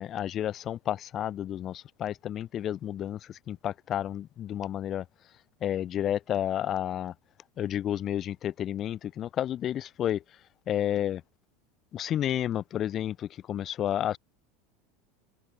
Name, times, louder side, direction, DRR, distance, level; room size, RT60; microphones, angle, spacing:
voice 1, 0.0-3.2 3.5-5.0 5.6-7.1 7.6-10.2 10.7-11.2 11.9-14.2, left 11 dB, 40° left, 2.9 m, -31 dB
hypercardioid pair, 85°, 0 cm